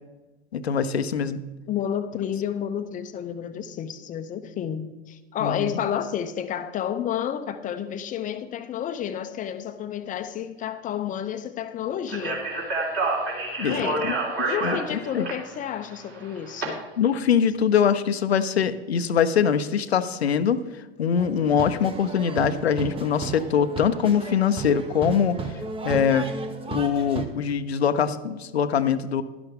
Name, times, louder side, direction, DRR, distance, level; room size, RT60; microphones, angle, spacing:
voice 1, 0.5-1.4 5.4-5.8 13.6-15.3 17.0-20.6 21.0-25.4 25.8-26.3 26.7-29.2, left 7 dB, 80° left, 11 dB, 0.7 m, -23 dB
voice 2, 1.7-12.5 13.7-14.0 14.4-16.8, left 9 dB, 25° left, 10 dB, 0.7 m, -30 dB
Speech, 12.1-16.6, right 2 dB, 35° right, 3.5 m, -28 dB
sound 1, 21.2-27.2, right 4 dB, 15° right, 1.0 m, -34 dB
11.5 x 11.0 x 3.6 m, 1.2 s
hypercardioid pair, 95°, 31 cm